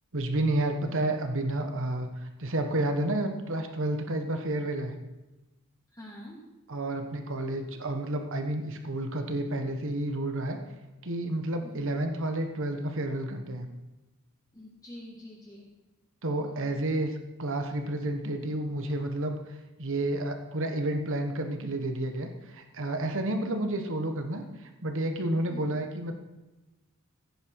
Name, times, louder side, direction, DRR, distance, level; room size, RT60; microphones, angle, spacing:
voice 1, 0.1-5.0 6.7-10.6 11.0-13.7 16.2-17.1 17.4-26.1, right 1 dB, 65° right, 6 dB, 1.3 m, -30 dB
voice 2, 5.9-6.4 11.6-11.9 14.5-15.7 16.4-16.8 25.5-25.6, left 1 dB, 15° left, -5 dB, 2.6 m, -46 dB
15.5 x 9.5 x 4.7 m, 1.1 s
head